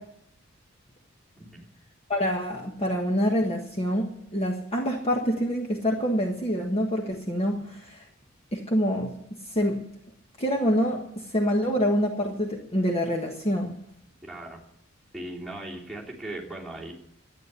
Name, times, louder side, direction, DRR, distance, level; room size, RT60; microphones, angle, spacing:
voice 1, 1.4-1.7 14.2-14.6 15.1-16.9, right 1 dB, ahead, -6 dB, 3.2 m, -38 dB
voice 2, 2.1-8.1 8.5-9.1 9.4-9.8 10.4-13.8, equal, 30° left, 1 dB, 1.4 m, -26 dB
12.5 x 9.5 x 8.2 m, 0.72 s
head